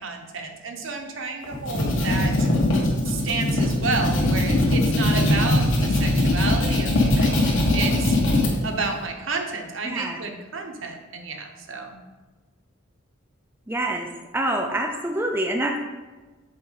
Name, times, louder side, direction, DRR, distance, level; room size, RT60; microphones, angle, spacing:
voice 1, 0.0-2.5 3.0-8.2 8.6-12.0, right 4 dB, 65° right, 3 dB, 1.0 m, -31 dB
sound 1, 1.4-8.5, left 1 dB, 65° left, 1.9 m, -21 dB
voice 2, 9.8-10.2 13.7-14.1 14.3-15.8, right 1 dB, 10° right, 2 dB, 0.4 m, -26 dB
7.7 x 5.0 x 4.1 m, 1.3 s
head